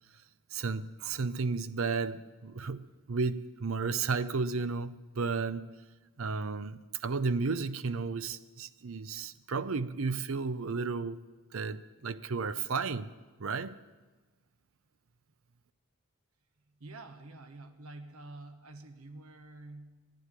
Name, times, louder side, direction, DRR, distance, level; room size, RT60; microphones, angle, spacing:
voice 1, 0.5-5.7 6.2-11.2 11.5-13.1 13.4-13.8, right 4 dB, 70° right, 0.6 m, -33 dB
voice 2, 16.7-20.1, right 2 dB, 90° right, 1.2 m, -48 dB
11.5 x 10.5 x 9.7 m
head